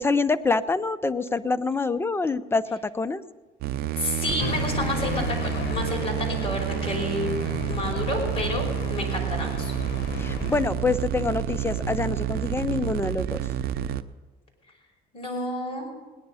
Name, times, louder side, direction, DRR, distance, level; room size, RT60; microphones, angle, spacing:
voice 1, 0.0-3.2 10.2-13.4, left 3 dB, 15° left, 13 dB, 0.6 m, -26 dB
sound 1, 3.6-14.0, right 11 dB, 65° right, 0.6 m, -29 dB
voice 2, 4.0-7.3 7.7-9.7 15.1-15.9, left 1 dB, 35° left, 0 dB, 5.2 m, -30 dB
sound 2, 4.4-10.6, left 6 dB, 85° left, 1.0 m, -34 dB
18.0 x 10.5 x 5.6 m, 1.3 s
cardioid pair, 110°, 17 cm